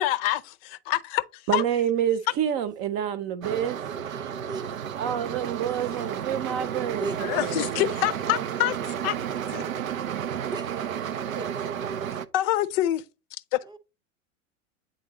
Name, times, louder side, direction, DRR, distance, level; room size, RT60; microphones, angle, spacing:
voice 1, 0.0-1.8 7.2-9.2 9.5-9.6 12.3-13.0 13.5-13.6, left 14 dB, 50° left, 0.5 m, -26 dB
voice 2, 1.5-3.8 5.0-7.8, right 9 dB, 45° right, 0.8 m, -28 dB
sound 1, 3.4-12.3, right 8 dB, 90° right, 0.6 m, -32 dB
voice 3, 4.0-4.7 6.6-7.2 10.4-10.9 11.4-11.7 13.6-13.8, right 3 dB, 10° right, 0.7 m, -38 dB
8.5 x 4.0 x 2.9 m
hypercardioid pair, 95°, 39 cm